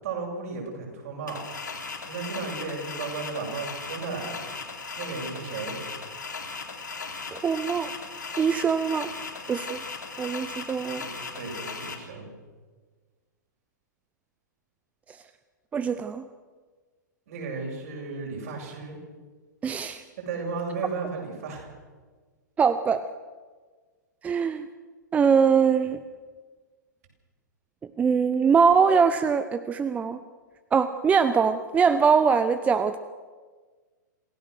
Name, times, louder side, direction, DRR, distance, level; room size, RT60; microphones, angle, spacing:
voice 1, 0.0-1.4 2.0-4.4 5.0-5.8 10.9-12.3 17.3-19.0 20.3-21.7, right 4 dB, 50° right, 0 dB, 7.8 m, -34 dB
sound 1, 1.3-11.9, left 4 dB, 75° left, 3.3 m, -37 dB
voice 2, 7.3-7.9 8.4-9.1 9.5-9.8 10.2-11.0 15.7-16.2 19.6-20.0 22.6-23.0 24.2-24.7 25.1-26.0 28.0-30.2 30.7-33.0, right 6 dB, 15° right, 12 dB, 0.7 m, -22 dB
27.5 x 16.5 x 6.5 m, 1.4 s
figure-of-eight pair, 110°, 10 cm